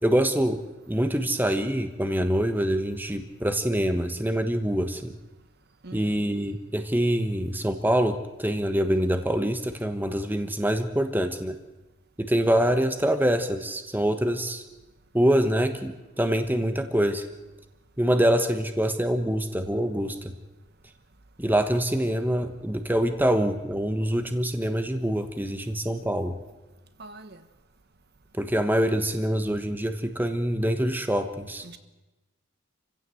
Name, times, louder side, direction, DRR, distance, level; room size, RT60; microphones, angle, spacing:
voice 1, 0.0-5.1 5.9-11.6 12.2-14.6 15.1-17.3 18.0-20.3 21.4-26.3 28.4-31.6, equal, 10° right, 1.2 m, -25 dB
voice 2, 5.8-6.3 27.0-27.4 31.6-31.8, right 2 dB, 50° right, 1.3 m, -44 dB
26.5 x 16.0 x 7.9 m
head